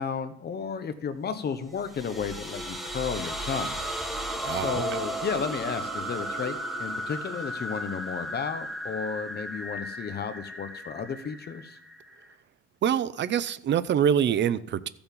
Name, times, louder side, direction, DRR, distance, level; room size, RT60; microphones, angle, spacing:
voice 1, 0.0-4.1 4.5-11.8, left 6 dB, 35° left, 10 dB, 1.0 m, -33 dB
sound 1, 1.7-12.3, right 1 dB, ahead, 1.2 m, -35 dB
voice 2, 4.4-4.8 12.8-14.9, right 9 dB, 40° right, 16 dB, 0.6 m, -25 dB
14.0 x 7.0 x 5.4 m, 0.67 s
cardioid pair, 145°, 29 cm